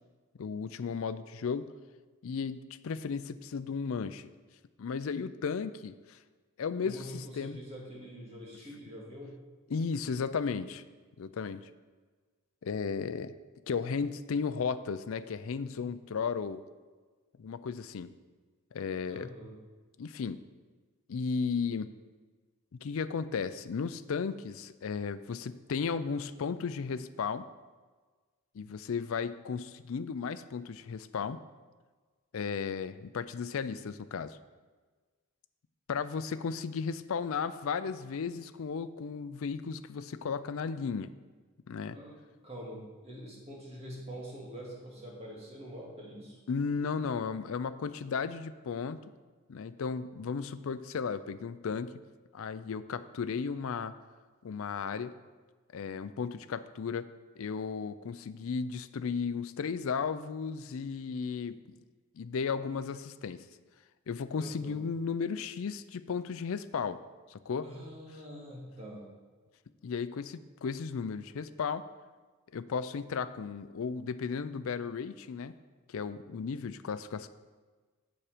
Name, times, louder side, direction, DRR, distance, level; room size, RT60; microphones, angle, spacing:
voice 1, 0.4-1.7 2.2-4.3 4.8-6.2 6.6-7.6 9.7-10.8 11.2-11.6 12.6-13.3 13.7-16.6 17.4-18.1 18.7-19.3 20.0-20.4 21.1-21.9 22.7-27.5 28.5-31.4 32.3-34.4 35.9-41.1 41.7-42.0 46.5-49.0 49.5-52.0 52.3-53.9 54.4-55.1 55.7-57.1 57.4-61.8 62.1-63.4 64.1-67.0 67.3-67.7 69.8-71.8 72.5-75.5 75.9-77.3, left 5 dB, 65° left, 12 dB, 0.4 m, -35 dB
voice 2, 6.8-9.3 19.1-19.6 41.9-42.2 42.4-46.4 64.3-64.8 67.6-69.1, equal, 25° right, -3 dB, 2.1 m, -45 dB
7.3 x 7.0 x 5.0 m, 1.4 s
head